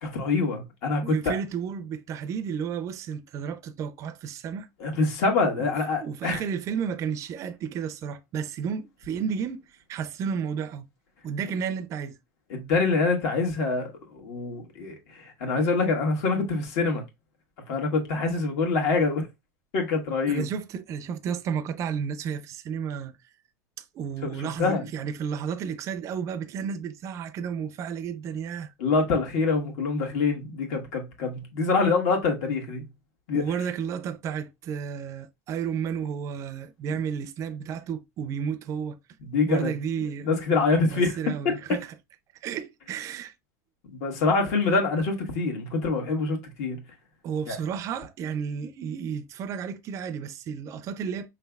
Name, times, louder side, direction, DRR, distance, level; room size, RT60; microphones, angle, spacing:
voice 1, 0.0-1.4 4.8-6.4 12.5-17.0 17.7-19.3 19.7-20.4 24.2-24.3 24.6-24.8 28.8-32.9 33.3-33.4 39.3-39.7 40.2-41.1 41.4-41.6 44.0-46.8 47.5-47.6, left 4 dB, 65° left, 1.4 m, -25 dB
voice 2, 1.0-4.7 5.6-5.7 6.0-10.9 11.2-12.2 20.3-23.1 23.9-28.7 33.3-39.0 39.5-40.3 40.9-41.9 42.4-43.3 47.2-51.3, right 7 dB, 35° right, 0.4 m, -32 dB
5.0 x 3.2 x 2.3 m
supercardioid pair, 135°, 9 cm